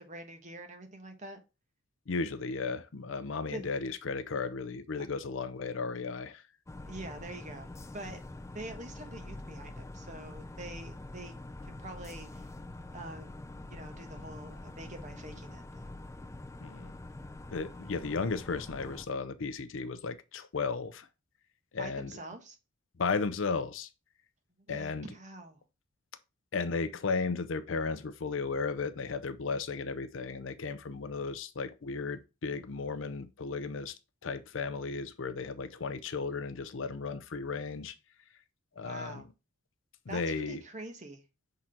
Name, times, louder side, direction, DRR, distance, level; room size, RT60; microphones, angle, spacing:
voice 1, 0.0-1.4 3.5-3.7 6.8-8.2 8.5-11.3 11.6-12.5 12.9-13.3 13.7-15.9 21.8-22.6 24.6-25.6 38.7-39.3 40.1-41.2, right 1 dB, 35° right, 1.2 m, -45 dB
voice 2, 2.1-6.4 16.6-16.9 17.5-21.1 21.7-22.1 23.0-23.9 24.7-25.1 26.5-33.9 34.2-38.0 38.8-39.2 40.1-40.6, left 4 dB, 65° left, 0.5 m, -35 dB
sound 1, 6.7-19.1, left 2 dB, 15° left, 0.3 m, -45 dB
5.8 x 3.8 x 4.3 m
head